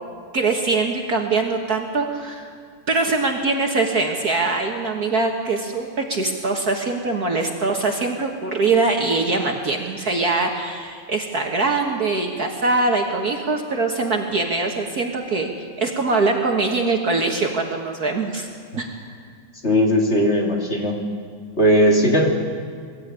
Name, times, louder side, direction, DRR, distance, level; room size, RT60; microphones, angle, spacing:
voice 1, 0.3-2.5 2.9-15.5 15.8-18.5 18.8-19.0, right 3 dB, 50° right, 2 dB, 1.7 m, -22 dB
voice 2, 19.6-21.0 21.6-22.3, equal, 30° left, -1 dB, 2.7 m, -17 dB
22.5 x 13.5 x 8.9 m, 2.2 s
omnidirectional pair, 2.4 m